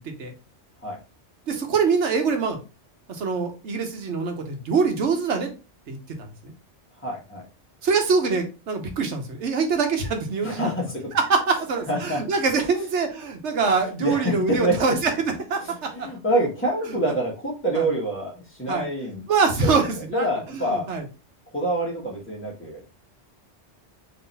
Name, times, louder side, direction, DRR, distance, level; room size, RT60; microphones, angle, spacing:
voice 1, 1.5-2.6 3.1-5.5 5.9-6.5 7.8-10.7 11.1-15.1 15.5-16.1 17.7-17.9 18.7-18.9 19.3-20.3 20.5-21.0, right 4 dB, 85° right, 4 dB, 1.3 m, -24 dB
voice 2, 7.0-7.4 10.4-11.2 11.9-12.2 14.0-15.0 15.6-19.2 19.6-20.9 21.5-22.8, right 1 dB, 10° left, -3 dB, 1.4 m, -26 dB
3.8 x 3.2 x 4.0 m, 0.32 s
omnidirectional pair, 1.2 m